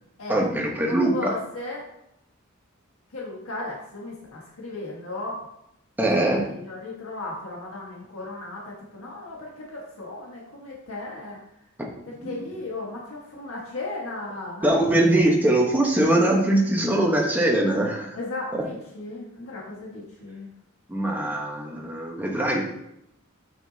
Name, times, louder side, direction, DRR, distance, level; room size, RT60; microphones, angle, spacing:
voice 1, 0.3-1.1 6.0-6.4 12.1-12.4 14.6-18.1 18.5-18.6 20.9-22.6, right 1 dB, 10° right, -1 dB, 1.1 m, -22 dB
voice 2, 0.8-1.8 3.1-5.5 6.2-11.4 12.2-14.8 15.1-15.2 18.1-20.5, left 2 dB, 85° left, -4 dB, 1.6 m, -36 dB
7.9 x 6.0 x 2.8 m, 0.79 s
head